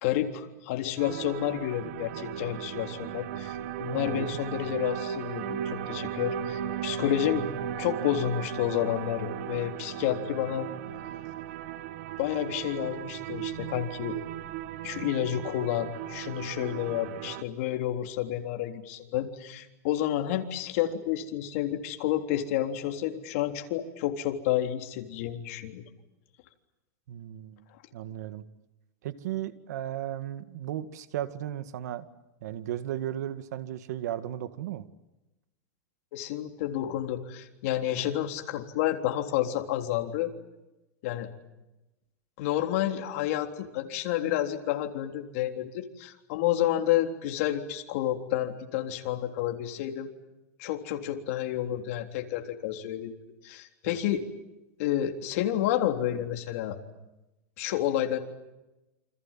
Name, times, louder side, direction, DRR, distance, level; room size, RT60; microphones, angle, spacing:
voice 1, 0.0-7.4 7.8-10.7 12.2-14.2 14.8-25.8 36.1-40.3 41.0-41.3 42.4-50.1 50.6-53.1 53.4-54.2 54.8-56.8 57.6-58.2, left 12 dB, 55° left, 5 dB, 3.6 m, -30 dB
sound 1, 1.0-17.4, right 10 dB, 55° right, 1.6 m, -36 dB
voice 2, 3.8-4.6 27.1-27.7 27.9-28.4 29.0-32.1 32.4-34.9 53.8-54.0, right 12 dB, 70° right, 11 dB, 2.0 m, -35 dB
29.0 x 27.0 x 7.5 m, 0.99 s
supercardioid pair, 160°, 9 cm